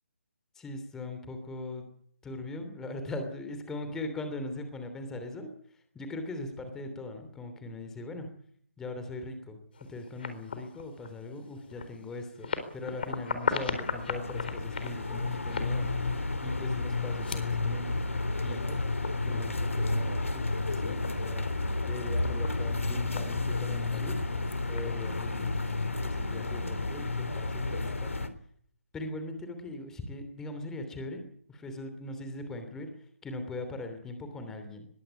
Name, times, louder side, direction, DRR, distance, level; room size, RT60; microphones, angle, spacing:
voice 1, 0.5-1.8 2.2-5.5 5.9-8.3 8.8-9.6 9.9-15.9 16.4-18.0 18.4-18.8 19.2-21.5 21.8-24.2 24.7-25.7 26.0-28.1 28.9-32.9 33.2-34.9, left 2 dB, 5° left, 7 dB, 3.0 m, -40 dB
sound 1, 9.7-25.9, left 5 dB, 45° left, 4.1 m, -40 dB
sound 2, 13.5-28.3, left 3 dB, 70° left, 3.3 m, -31 dB
21.5 x 17.0 x 8.4 m, 0.64 s
figure-of-eight pair, 150°, 8 cm